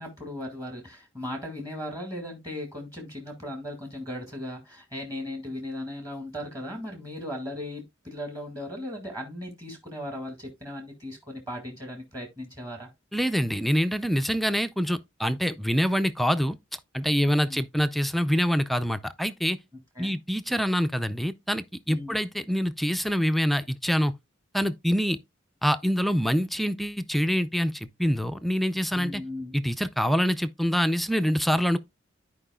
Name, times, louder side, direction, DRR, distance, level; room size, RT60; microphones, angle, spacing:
voice 1, 0.0-12.9 17.2-17.6 20.0-20.2 21.9-22.2 29.0-29.6, left 1 dB, 20° right, 1.9 m, -37 dB
voice 2, 13.1-16.6 16.9-19.6 20.0-24.1 24.5-25.2 25.6-29.2 29.5-31.8, equal, ahead, 0.4 m, -25 dB
13.5 x 4.8 x 2.3 m
head